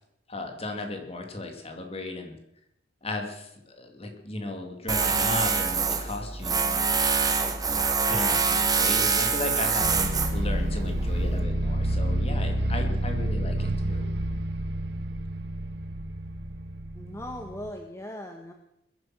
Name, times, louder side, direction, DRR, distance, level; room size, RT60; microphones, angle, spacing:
voice 1, 0.3-2.3 3.0-7.4 8.1-14.1, left 2 dB, 35° left, 4 dB, 2.5 m, -35 dB
Tools, 4.9-11.4, right 5 dB, 20° right, 1.4 m, -25 dB
sound 1, 9.8-17.7, right 1 dB, 65° right, 1.4 m, -29 dB
voice 2, 16.9-18.5, left 1 dB, 15° left, 4 dB, 1.3 m, -39 dB
21.5 x 10.5 x 6.1 m, 0.81 s
head